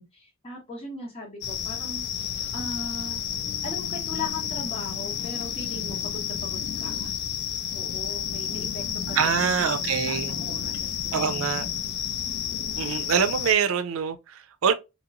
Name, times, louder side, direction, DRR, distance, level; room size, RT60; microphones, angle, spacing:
voice 1, 0.0-3.2 3.6-7.1 7.7-11.7, left 2 dB, 30° left, 1.1 m, -39 dB
sound 1, 1.4-13.5, left 9 dB, 50° left, 0.3 m, -31 dB
voice 2, 9.1-10.3 11.1-11.7 12.8-14.7, right 7 dB, 75° right, 0.4 m, -25 dB
2.9 x 2.9 x 2.5 m
head